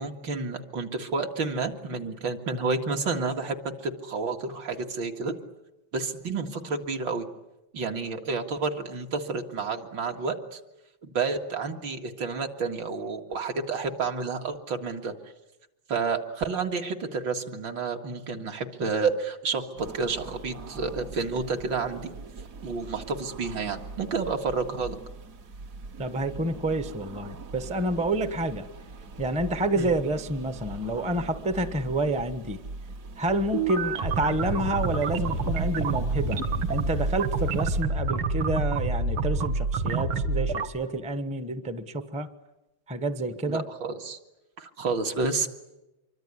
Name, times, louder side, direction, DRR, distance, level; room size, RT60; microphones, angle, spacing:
voice 1, 0.0-5.3 5.9-7.3 7.7-10.6 11.0-15.2 15.9-22.0 22.6-25.0 29.7-29.9 43.5-44.2 44.6-45.5, right 4 dB, 65° right, 4 dB, 2.6 m, -30 dB
sound 1, 19.8-37.8, right 3 dB, 50° right, 1.4 m, -42 dB
voice 2, 26.0-28.7 29.2-32.6 33.2-36.4 36.7-42.3 42.9-43.6, right 1 dB, 5° right, 11 dB, 0.7 m, -28 dB
sound 2, 33.5-40.7, right 3 dB, 85° right, 2.4 m, -28 dB
26.0 x 23.5 x 9.6 m, 0.97 s
omnidirectional pair, 2.2 m